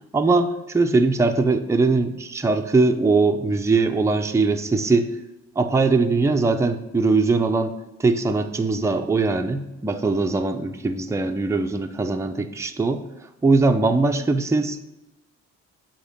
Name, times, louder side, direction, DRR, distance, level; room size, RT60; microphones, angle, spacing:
voice 1, 0.1-5.1 5.6-13.0 13.4-14.8, right 3 dB, 10° right, 5 dB, 0.5 m, -21 dB
8.0 x 2.9 x 4.9 m, 0.97 s
cardioid pair, 90°, 30 cm